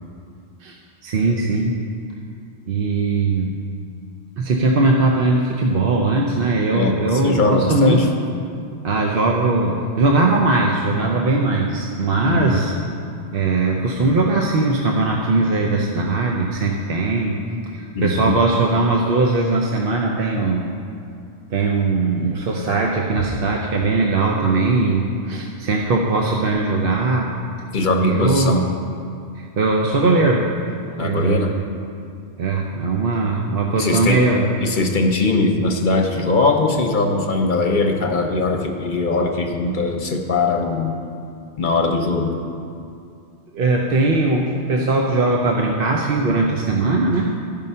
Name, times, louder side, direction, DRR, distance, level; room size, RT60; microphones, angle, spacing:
voice 1, 1.0-1.7 2.7-3.5 4.4-8.0 8.8-12.7 13.3-17.4 17.7-20.7 21.5-27.3 28.0-28.5 29.4-30.5 31.0-31.6 32.4-34.5 43.5-47.3, right 3 dB, 55° right, 0 dB, 0.8 m, -19 dB
voice 2, 6.7-8.1 12.2-12.6 17.9-18.4 27.7-28.6 31.0-31.5 33.8-34.2 34.6-40.9 41.6-42.4, left 3 dB, 50° left, 3 dB, 0.8 m, -20 dB
13.5 x 5.4 x 5.5 m, 2.4 s
omnidirectional pair, 1.2 m